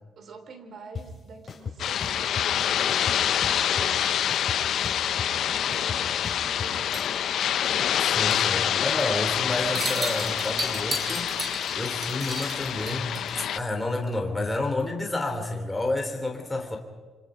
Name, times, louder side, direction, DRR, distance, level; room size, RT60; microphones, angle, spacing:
voice 1, 0.0-3.0 3.5-4.7 5.6-7.4, right 4 dB, 60° right, 8 dB, 3.3 m, -46 dB
sound 1, 0.9-1.0 1.5-2.5 2.9-4.0 4.3-6.7, left 5 dB, 40° left, 4.3 m, -36 dB
sound 2, 1.8-13.6, left 10 dB, 70° left, 0.7 m, -26 dB
sound 3, 6.9-8.0 8.3-8.5 8.8-9.2 9.5-13.4, right 1 dB, 30° right, 4.8 m, -34 dB
voice 2, 8.0-16.8, left 2 dB, 15° left, 2 dB, 3.4 m, -30 dB
27.5 x 25.5 x 5.1 m, 1.3 s
cardioid pair, 90°, 0 cm